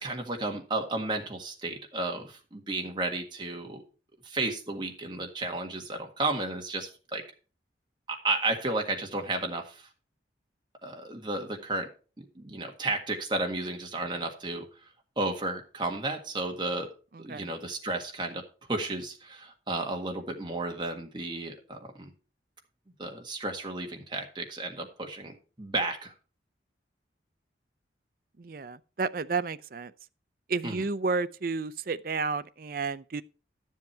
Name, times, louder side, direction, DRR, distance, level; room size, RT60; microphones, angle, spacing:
voice 1, 0.0-3.8 4.2-7.2 8.1-9.9 10.8-11.9 12.2-14.7 15.2-16.9 17.2-18.4 18.7-22.1 23.0-26.1 30.6-30.8, right 2 dB, 25° right, 1.7 m, -33 dB
voice 2, 17.1-17.5 28.4-29.9 30.5-33.2, right 4 dB, 50° right, 0.5 m, -31 dB
12.0 x 7.4 x 4.5 m
head